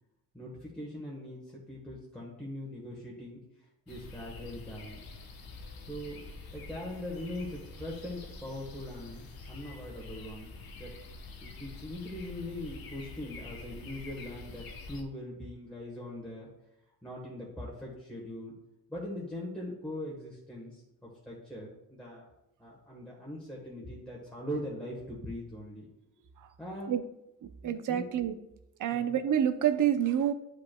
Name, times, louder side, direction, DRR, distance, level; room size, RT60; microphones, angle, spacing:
voice 1, 0.3-5.0 5.9-6.2 6.5-10.5 10.8-11.0 11.4-16.5 17.0-18.5 18.9-22.2 22.6-25.9 26.6-26.9 27.6-28.0 28.9-29.1, left 1 dB, ahead, -5 dB, 1.1 m, -41 dB
sound 1, 3.9-15.0, left 3 dB, 80° left, 0.9 m, -46 dB
voice 2, 27.4-28.4 28.8-30.3, right 10 dB, 60° right, 10 dB, 0.6 m, -28 dB
10.5 x 5.2 x 2.2 m, 0.86 s
wide cardioid pair, 165°, 35 cm